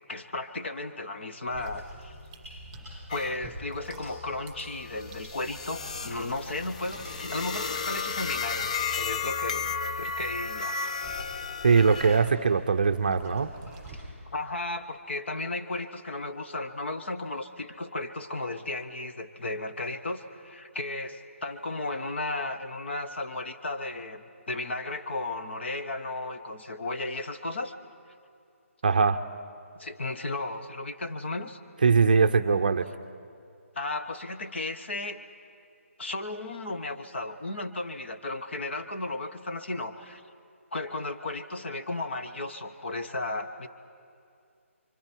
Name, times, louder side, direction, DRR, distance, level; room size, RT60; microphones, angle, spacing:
voice 1, 0.1-2.1 3.1-8.7 9.0-10.9 14.3-27.7 29.8-31.6 33.7-35.2 36.0-40.2 40.7-43.7, left 2 dB, 50° left, 7 dB, 1.3 m, -34 dB
sound 1, 1.5-10.6, equal, 5° left, 3.9 m, -49 dB
sound 2, 1.5-14.0, right 1 dB, 10° right, 7.6 m, -48 dB
sound 3, 3.1-3.4 3.8-12.3, left 5 dB, 30° left, 0.5 m, -34 dB
voice 2, 11.6-13.5 28.8-29.2 31.8-32.8, right 5 dB, 40° right, 9 dB, 0.6 m, -21 dB
29.5 x 24.5 x 4.6 m, 2.4 s
hypercardioid pair, 175°, 8 cm